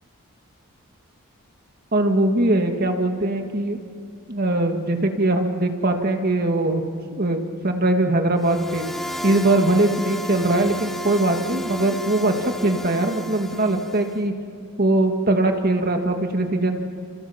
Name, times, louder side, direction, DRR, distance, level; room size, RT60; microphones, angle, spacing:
voice 1, 1.9-3.8 4.3-6.8 7.1-8.9 9.2-14.3 14.8-16.8, right 2 dB, 45° right, 5 dB, 1.9 m, -21 dB
sound 1, 8.4-14.2, left 1 dB, ahead, 0.9 m, -33 dB
28.5 x 27.5 x 5.9 m, 2.6 s
head